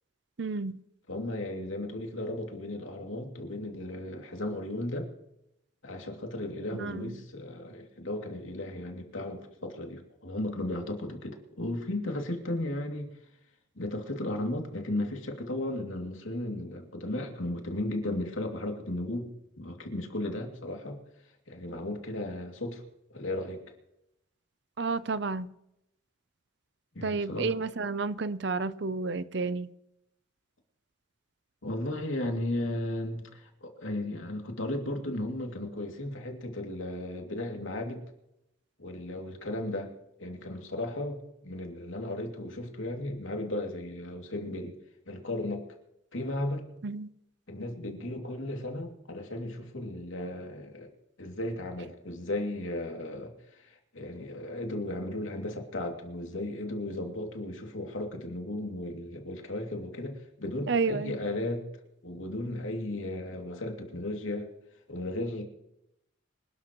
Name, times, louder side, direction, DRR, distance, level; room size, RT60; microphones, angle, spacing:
voice 1, 0.4-0.8 6.8-7.2 24.8-25.5 27.0-29.7 46.8-47.1 60.7-61.2, right 4 dB, 55° right, 15 dB, 0.6 m, -31 dB
voice 2, 1.1-5.1 5.8-13.1 13.8-21.0 21.5-22.8 23.1-23.6 26.9-27.5 31.6-38.0 38.8-39.9 40.2-44.7 45.1-45.7 46.1-46.7 47.5-50.9 51.2-61.7 62.0-64.5 64.9-65.4, left 1 dB, 70° left, 2 dB, 2.7 m, -35 dB
26.0 x 12.0 x 3.1 m, 0.83 s
head